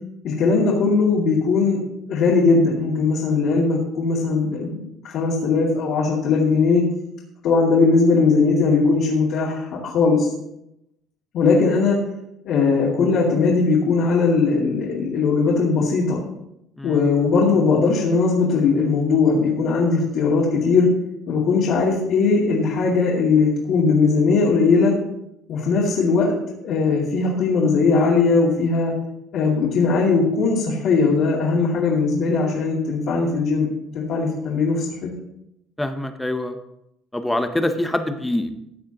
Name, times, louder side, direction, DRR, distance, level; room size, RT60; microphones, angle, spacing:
voice 1, 0.2-1.8 2.1-6.8 7.4-10.3 11.3-12.0 12.4-16.2 16.8-20.9 21.3-24.9 25.5-26.3 26.6-28.9 29.3-33.7 33.9-35.1, left 4 dB, 50° left, -6 dB, 2.4 m, -19 dB
voice 2, 16.8-17.1 35.8-36.6 37.1-38.6, left 1 dB, 5° left, 7 dB, 0.7 m, -25 dB
15.0 x 9.1 x 2.9 m, 0.82 s
cardioid pair, 175°, 0 cm